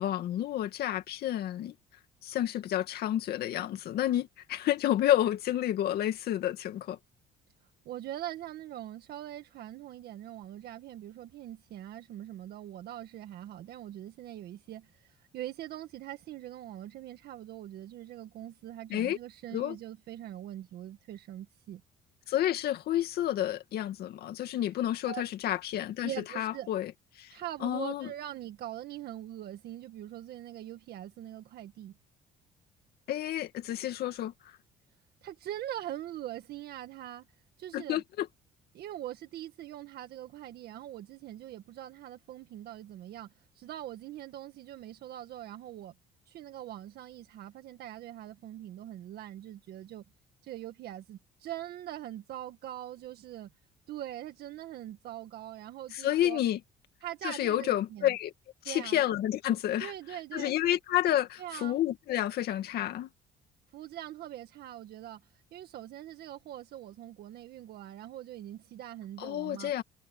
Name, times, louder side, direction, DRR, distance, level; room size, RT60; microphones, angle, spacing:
voice 1, 0.0-1.7 2.2-7.0 18.9-19.2 19.5-19.8 22.3-26.1 26.4-26.9 27.2-27.3 27.6-28.1 33.1-34.3 37.7-38.3 55.9-56.6 57.2-58.3 58.7-59.9 60.3-63.1 69.2-69.8, left 12 dB, 70° left, 2.2 m, -30 dB
voice 2, 7.8-21.8 25.0-25.2 26.0-26.7 27.3-32.0 35.2-37.3 37.6-38.0 38.7-45.9 46.3-50.0 50.4-53.5 53.9-56.4 57.0-58.2 58.6-59.0 59.8-60.5 61.4-61.8 63.7-65.2 65.5-69.7, right 12 dB, 70° right, 1.7 m, -42 dB
cardioid pair, 110°, 17 cm